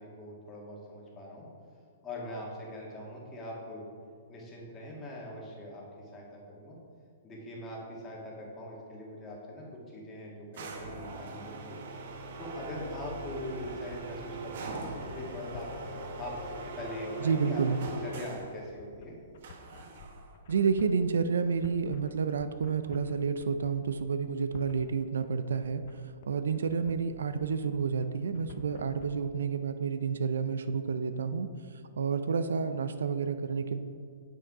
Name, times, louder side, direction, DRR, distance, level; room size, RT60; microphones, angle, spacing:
voice 1, 0.0-1.5 2.0-3.9 4.3-6.8 7.2-11.8 12.4-15.7 16.1-19.1, left 1 dB, 15° left, -3 dB, 1.7 m, -42 dB
sound 1, 10.5-18.6 19.4-20.3, right 2 dB, 60° right, 1.0 m, -41 dB
sound 2, 13.1-29.1, left 4 dB, 50° left, 0.7 m, -52 dB
voice 2, 17.2-17.8 20.5-31.5 32.0-33.8, right 5 dB, 85° right, 11 dB, 0.4 m, -30 dB
6.6 x 6.3 x 4.7 m, 2.2 s
hypercardioid pair, 150°, 0 cm